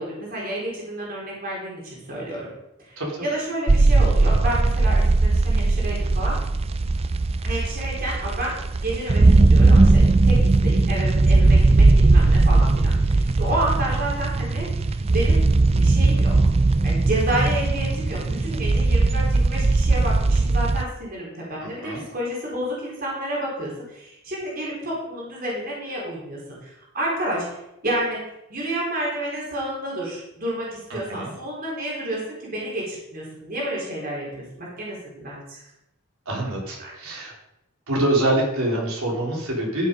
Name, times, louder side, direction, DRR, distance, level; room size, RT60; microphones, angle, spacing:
voice 1, 0.0-2.5 2.8-6.4 7.4-15.4 15.7-16.5 16.8-27.4 27.8-28.2 28.5-35.6 36.8-36.9, right 1 dB, 45° right, -4 dB, 4.3 m, -30 dB
sound 1, 3.7-20.8, right 3 dB, 30° right, 0.4 m, -18 dB
voice 2, 21.6-22.0 30.9-31.3 36.3-37.3 37.9-39.9, right 1 dB, 85° right, -2 dB, 3.8 m, -25 dB
13.0 x 7.4 x 5.3 m, 0.87 s
head